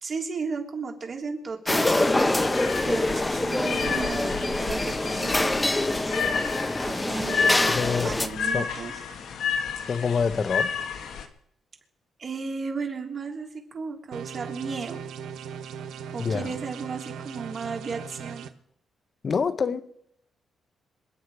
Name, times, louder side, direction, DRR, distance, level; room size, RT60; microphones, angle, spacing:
voice 1, 0.0-5.5 6.8-8.9 12.2-15.0 16.1-18.5, right 4 dB, 50° right, 3.3 m, -34 dB
sound 1, 1.7-11.3, left 6 dB, 80° left, 1.7 m, -31 dB
sound 2, 1.7-8.3, left 2 dB, 15° left, 1.1 m, -25 dB
voice 2, 7.7-8.2 8.5-8.7 9.9-10.8 16.2-16.5 19.2-19.8, left 5 dB, 50° left, 1.2 m, -26 dB
sound 3, 14.1-18.5, right 7 dB, 90° right, 1.0 m, -38 dB
27.0 x 9.2 x 4.9 m
cardioid pair, 80°, 0 cm